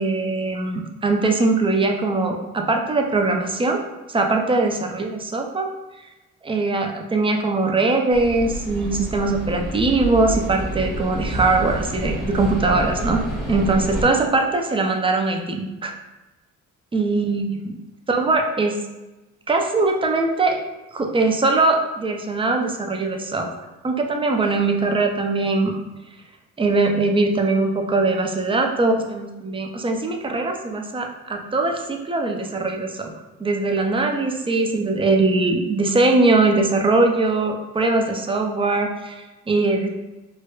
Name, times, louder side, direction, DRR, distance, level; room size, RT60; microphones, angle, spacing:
voice 1, 0.0-3.8 4.1-5.7 6.4-13.2 13.5-15.9 16.9-17.8 18.1-18.8 19.5-20.6 20.9-23.5 23.8-25.8 26.6-33.1 33.4-39.9, right 3 dB, 20° right, 3 dB, 0.4 m, -21 dB
sound 1, 8.1-14.0, right 1 dB, ahead, 0.9 m, -28 dB
4.5 x 2.1 x 2.3 m, 1.1 s
cardioid pair, 90°, 30 cm